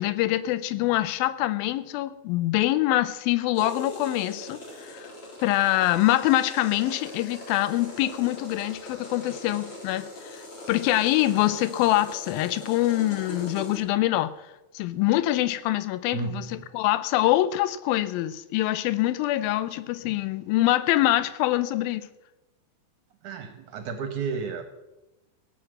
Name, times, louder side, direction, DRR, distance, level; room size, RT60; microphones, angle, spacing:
voice 1, 0.0-5.1 5.4-14.3 14.7-22.1, left 15 dB, 80° left, 2.4 m, -25 dB
sound 1, 3.5-13.8, left 1 dB, 35° left, 3.9 m, -41 dB
voice 2, 16.1-16.6 23.2-24.6, right 5 dB, 65° right, 2.2 m, -32 dB
17.0 x 7.9 x 7.8 m
omnidirectional pair, 4.4 m